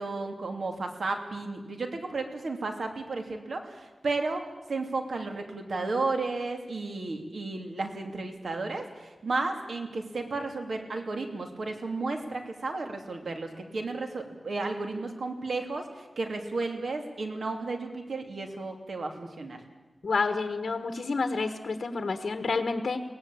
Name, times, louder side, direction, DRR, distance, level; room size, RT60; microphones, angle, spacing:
voice 1, 0.0-19.6, right 3 dB, 80° right, 4 dB, 2.9 m, -33 dB
voice 2, 20.0-23.0, left 4 dB, 75° left, 8 dB, 1.4 m, -29 dB
23.0 x 18.0 x 8.7 m, 1.2 s
wide cardioid pair, 95°, 0 cm